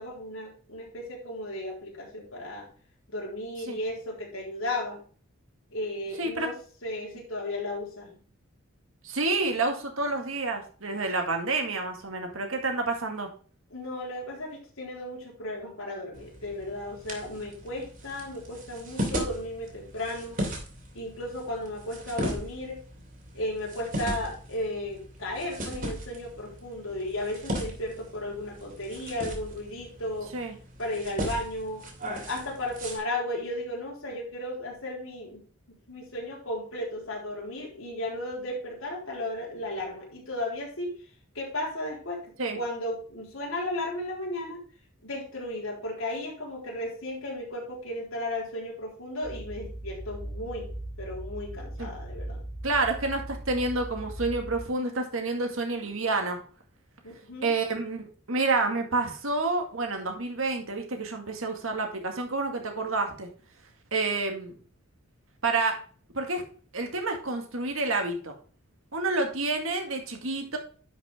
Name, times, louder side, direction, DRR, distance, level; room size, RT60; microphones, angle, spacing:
voice 1, 0.0-2.7 3.1-5.0 5.7-6.6 6.8-8.2 13.7-20.4 20.9-22.8 23.3-30.3 30.8-31.9 32.2-35.4 35.9-40.9 41.3-42.2 42.5-44.6 45.0-50.7 51.0-52.4 57.2-57.5, left 1 dB, 75° left, -2 dB, 3.8 m, -34 dB
voice 2, 6.2-6.5 9.0-13.3 30.3-30.6 42.4-42.6 51.8-51.9 52.6-56.4 57.4-63.3 63.9-64.6 65.4-65.8 66.1-66.4 66.7-68.3 68.9-70.6, right 3 dB, 70° right, 4 dB, 2.1 m, -29 dB
sound 1, 16.1-33.0, equal, 40° right, 3.0 m, -37 dB
sound 2, 49.2-54.7, right 1 dB, 40° left, 2.6 m, -39 dB
11.0 x 6.0 x 3.6 m, 0.41 s
head